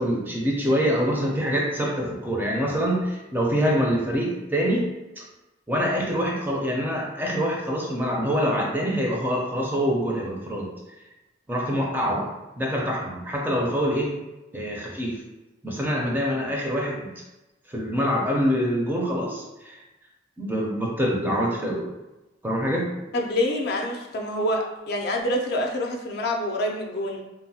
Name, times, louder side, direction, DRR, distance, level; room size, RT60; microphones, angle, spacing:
voice 1, 0.0-5.2 5.7-10.7 11.5-12.3 12.6-14.1 14.5-15.2 15.6-17.1 17.7-19.8 20.4-21.9 22.4-22.9, equal, 10° right, -2 dB, 0.4 m, -25 dB
voice 2, 23.1-27.2, left 1 dB, 55° left, 1 dB, 0.4 m, -26 dB
3.0 x 2.1 x 2.7 m, 1.0 s
head